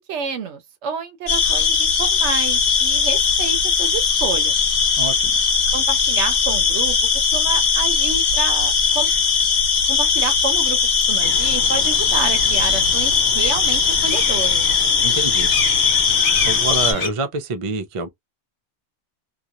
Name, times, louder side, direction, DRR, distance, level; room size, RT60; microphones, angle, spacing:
voice 1, 0.1-4.6 5.7-7.0 7.3-9.1 9.9-10.8 11.1-14.7, right 6 dB, 70° right, 0.9 m, -29 dB
sound 1, 1.3-16.9, left 6 dB, 55° left, 1.0 m, -19 dB
voice 2, 5.0-5.3 15.0-15.5 16.4-18.1, right 3 dB, 40° right, 0.5 m, -26 dB
sound 2, 11.2-17.1, left 5 dB, 75° left, 1.2 m, -30 dB
2.9 x 2.2 x 2.5 m
omnidirectional pair, 1.2 m